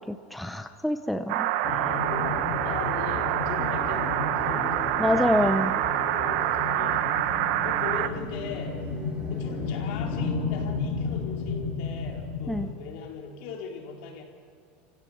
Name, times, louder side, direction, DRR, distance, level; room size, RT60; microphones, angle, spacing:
voice 1, 0.0-1.5 5.0-5.7 12.5-12.7, left 1 dB, ahead, 7 dB, 0.7 m, -26 dB
sound 1, 1.3-8.1, right 13 dB, 65° right, 0.9 m, -27 dB
sound 2, 1.6-12.7, left 4 dB, 40° left, 3.0 m, -33 dB
voice 2, 2.6-7.1 7.6-8.8 9.3-14.2, left 6 dB, 65° left, 1 dB, 4.2 m, -39 dB
sound 3, 4.4-9.7, right 2 dB, 15° right, 3.4 m, -43 dB
30.0 x 16.5 x 8.7 m, 2.2 s
supercardioid pair, 160°, 6 cm